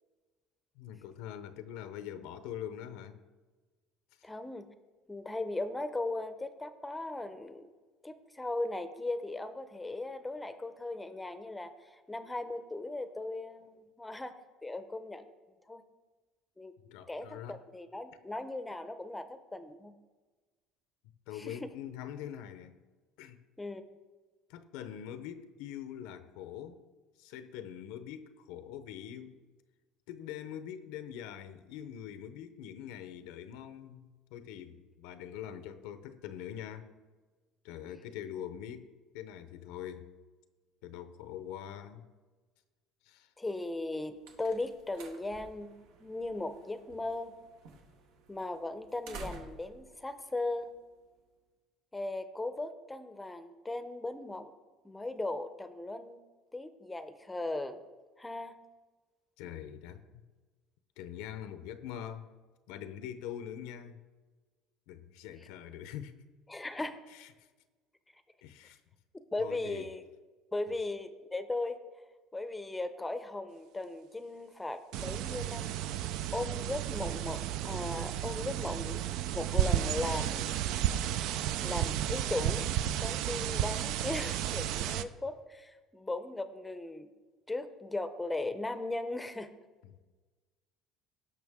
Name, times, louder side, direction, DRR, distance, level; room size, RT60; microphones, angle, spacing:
voice 1, 0.8-3.2 16.9-17.6 21.3-22.8 23.2-23.4 24.5-26.8 27.2-29.4 30.1-36.9 37.6-38.9 39.1-40.1 40.8-42.0 43.0-43.3 59.4-60.2 61.0-62.3 62.7-64.0 64.9-66.1 67.1-67.5 68.4-68.8 69.4-69.9 70.7-70.8 89.8-90.0, left 10 dB, 85° left, 11 dB, 0.7 m, -43 dB
voice 2, 4.2-4.7 5.1-7.7 8.0-11.7 12.1-14.3 14.6-15.2 15.7-15.8 16.6-16.7 17.1-19.9 21.3-21.6 23.6-23.8 43.4-47.3 48.3-50.7 51.9-54.5 54.8-56.2 56.5-57.8 58.2-58.5 66.5-67.0 69.3-70.0 70.5-71.8 72.3-75.8 76.3-79.0 79.3-80.5 81.6-82.7 83.0-87.1 87.5-89.5, left 2 dB, 10° left, 11 dB, 0.6 m, -37 dB
sound 1, 43.7-51.2, right 3 dB, 85° right, 1.4 m, -52 dB
sound 2, 74.9-85.0, right 11 dB, 70° right, 0.4 m, -32 dB
17.0 x 6.0 x 3.6 m, 1.3 s
cardioid pair, 135°, 0 cm